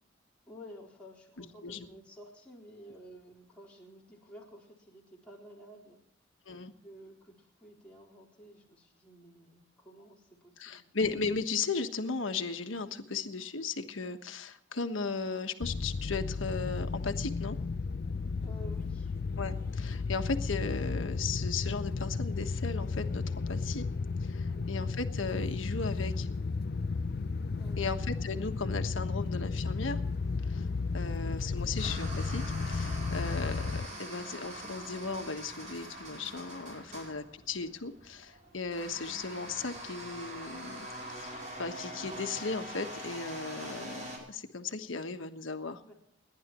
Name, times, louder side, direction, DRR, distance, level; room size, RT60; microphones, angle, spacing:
voice 1, 0.5-6.0 6.8-11.0 18.4-19.1 24.5-24.7 27.6-27.9 36.8-37.0 45.8-45.9, equal, 5° left, -5 dB, 4.1 m, -52 dB
voice 2, 1.4-1.9 6.5-6.7 10.6-17.6 19.4-23.9 24.2-26.3 27.8-30.0 30.4-30.7 30.9-40.9 41.1-45.8, left 4 dB, 90° left, 7 dB, 1.3 m, -36 dB
sound 1, 15.6-33.9, left 4 dB, 55° left, 0.5 m, -33 dB
sound 2, 30.1-44.2, right 1 dB, 40° right, 5.6 m, -44 dB
29.5 x 11.0 x 3.0 m, 0.71 s
head